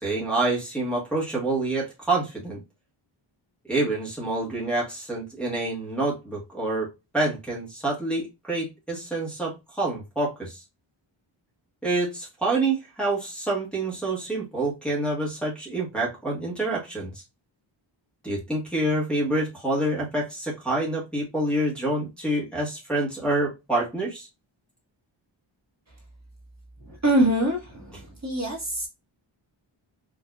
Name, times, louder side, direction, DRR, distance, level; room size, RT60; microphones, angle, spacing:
voice 1, 0.0-2.6 3.7-10.6 11.8-17.2 18.2-24.3, right 2 dB, ahead, 1.3 m, -27 dB
voice 2, 26.8-28.9, right 1 dB, 35° right, 1.5 m, -24 dB
4.8 x 2.7 x 2.3 m
wide cardioid pair, 135°, 49 cm